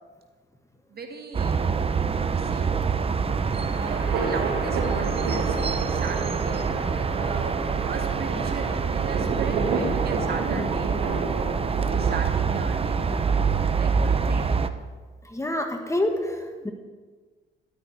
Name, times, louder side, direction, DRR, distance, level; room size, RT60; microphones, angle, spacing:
voice 1, 0.9-1.8 2.2-2.7 3.7-6.8 7.1-7.6 7.9-14.5, right 5 dB, 50° right, 4 dB, 2.1 m, -38 dB
sound 1, 1.3-14.7, right 5 dB, 30° right, 0.8 m, -26 dB
sound 2, 3.1-13.6, right 4 dB, 90° right, 3.1 m, -31 dB
voice 2, 15.2-16.7, left 1 dB, 15° left, 4 dB, 1.8 m, -27 dB
13.0 x 12.5 x 4.7 m, 1.4 s
cardioid pair, 90°, 20 cm